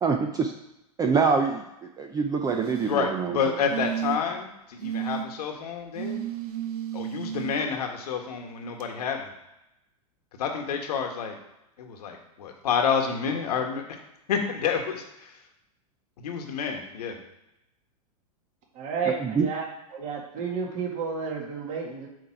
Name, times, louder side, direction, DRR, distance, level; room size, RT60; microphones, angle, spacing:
voice 1, 0.0-0.5 1.0-1.6 2.0-3.4 19.1-19.5, right 5 dB, 20° right, 4 dB, 0.5 m, -25 dB
sound 1, 2.4-3.0 3.7-4.4 4.8-5.2 6.0-7.6 8.8-8.9, right 10 dB, 70° right, 0.9 m, -32 dB
voice 2, 2.8-6.2 6.9-9.3 10.4-11.4 11.8-13.8 14.3-15.3 16.2-17.2, left 6 dB, 75° left, 3 dB, 1.5 m, -29 dB
voice 3, 18.7-19.6 19.9-22.1, right 5 dB, 40° right, -1 dB, 1.9 m, -31 dB
8.1 x 3.3 x 5.8 m, 0.90 s
hypercardioid pair, 115°, 20 cm